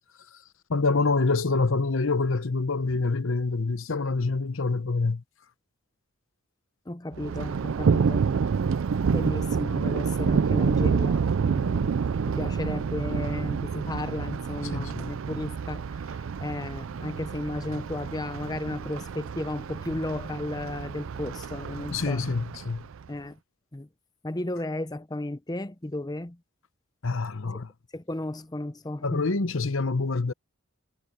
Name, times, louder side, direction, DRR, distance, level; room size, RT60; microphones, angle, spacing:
voice 1, 0.7-5.2 14.7-15.1 21.9-22.8 27.0-27.7 29.0-30.3, left 3 dB, 65° left, 0.9 m, -26 dB
voice 2, 6.9-8.3 9.1-22.2 23.1-23.4 23.7-23.9 24.2-26.4 27.5-27.6 27.9-29.2, left 1 dB, 20° left, 0.7 m, -34 dB
Thunder, 7.1-23.1, right 6 dB, 65° right, 0.4 m, -28 dB
head